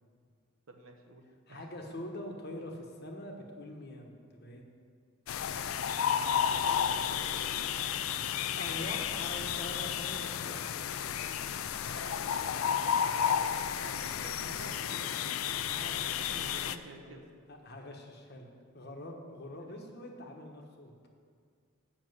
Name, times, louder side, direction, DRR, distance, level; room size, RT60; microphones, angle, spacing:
voice 1, 0.7-1.7 6.3-7.5 11.7-12.4 13.3-17.3 19.6-19.8, right 2 dB, 70° right, 4 dB, 1.1 m, -50 dB
voice 2, 1.5-4.6 8.5-10.6 17.0-17.2 17.5-20.9, left 1 dB, 50° left, 2 dB, 1.3 m, -44 dB
sound 1, 5.3-16.8, left 8 dB, 80° left, 0.4 m, -32 dB
7.8 x 6.3 x 7.9 m, 2.1 s
head